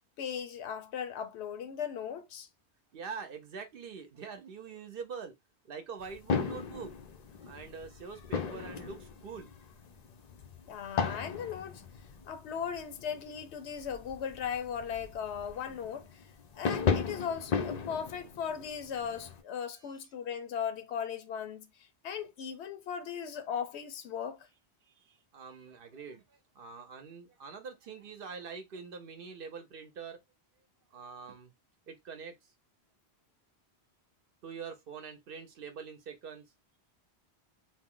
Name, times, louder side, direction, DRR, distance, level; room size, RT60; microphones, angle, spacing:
voice 1, 0.2-2.5 10.7-11.8 12.2-16.1 16.5-21.7 22.0-24.5, left 7 dB, 85° left, 0.9 m, -37 dB
voice 2, 2.9-5.3 5.6-6.9 7.4-9.5 19.7-20.0 24.8-26.2 26.5-30.2 30.9-31.5 31.9-32.3 34.4-36.4, right 5 dB, 60° right, 0.8 m, -44 dB
sound 1, 6.0-19.4, left 6 dB, 55° left, 0.5 m, -37 dB
2.6 x 2.0 x 3.6 m
omnidirectional pair, 1.1 m